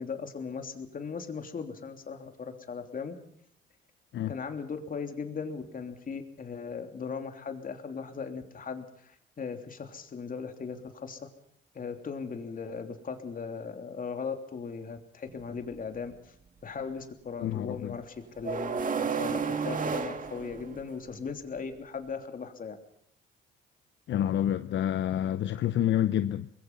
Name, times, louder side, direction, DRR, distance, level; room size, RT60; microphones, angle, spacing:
voice 1, 0.0-3.1 4.3-11.3 11.7-16.3 16.6-22.8, left 5 dB, 45° left, 3.2 m, -38 dB
sound 1, 15.3-15.4 18.4-21.1, right 5 dB, 40° right, 2.0 m, -31 dB
voice 2, 17.4-18.0 24.1-26.5, left 11 dB, 70° left, 0.8 m, -28 dB
24.5 x 21.0 x 5.6 m
cardioid pair, 90°, 20 cm